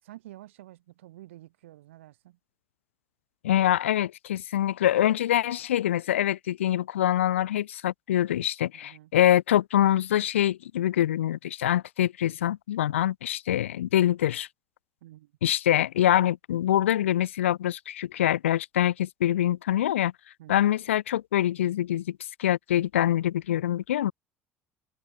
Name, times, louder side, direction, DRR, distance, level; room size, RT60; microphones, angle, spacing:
voice 1, 0.0-2.4 8.7-9.1 15.0-15.3 20.4-20.7, right 15 dB, 70° right, 5.8 m, -49 dB
voice 2, 3.4-14.5 15.4-20.1 20.5-24.1, left 12 dB, 75° left, 0.7 m, -25 dB
figure-of-eight pair, 60°, 7 cm